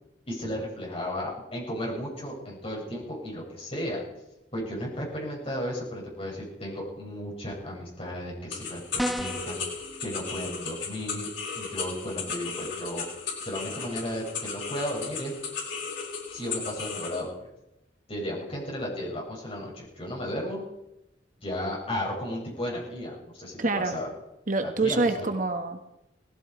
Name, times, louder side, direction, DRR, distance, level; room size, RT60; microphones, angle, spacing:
voice 1, 0.3-4.0 4.5-9.7 10.0-11.3 11.6-13.1 13.4-15.3 16.3-17.5 18.1-20.6 21.4-24.1 24.6-25.3, equal, 30° left, -3 dB, 7.1 m, -34 dB
sound 1, 8.5-17.2, left 5 dB, 85° left, 5.1 m, -36 dB
sound 2, 9.0-9.5, equal, ahead, 0.6 m, -30 dB
voice 2, 23.6-24.0 24.5-25.9, right 3 dB, 45° right, 6 dB, 1.3 m, -26 dB
18.5 x 15.5 x 4.7 m, 0.90 s
head